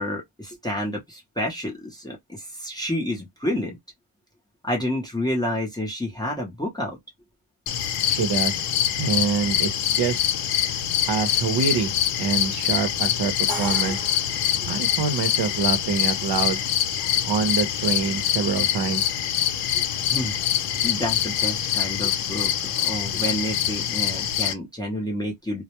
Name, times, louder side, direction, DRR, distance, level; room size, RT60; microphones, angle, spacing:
voice 1, 0.0-3.8 4.6-7.0 20.1-20.3 20.8-25.6, left 1 dB, 10° left, 0.6 m, -29 dB
sound 1, 7.7-24.5, left 10 dB, 90° left, 0.7 m, -25 dB
voice 2, 8.1-8.5 9.0-10.2 11.1-14.0 14.7-16.6 17.2-19.0, right 5 dB, 50° right, 0.7 m, -25 dB
Crash cymbal, 13.5-15.4, equal, 15° right, 0.8 m, -36 dB
2.2 x 2.1 x 2.8 m
cardioid pair, 165°, 50 cm